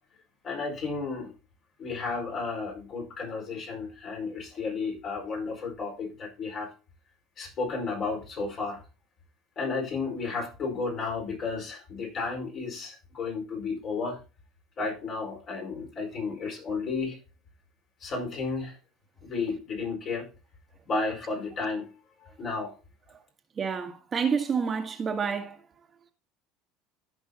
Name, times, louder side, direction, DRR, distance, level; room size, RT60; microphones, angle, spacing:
voice 1, 0.4-1.3 1.8-6.7 7.4-8.8 9.6-14.2 14.8-17.2 18.0-18.8 19.2-20.3 20.9-21.9 22.4-22.7, left 4 dB, 45° left, 4.6 m, -32 dB
voice 2, 23.6-25.6, right 6 dB, 30° right, 1.4 m, -28 dB
14.5 x 5.4 x 2.9 m
supercardioid pair, 100°, 0 cm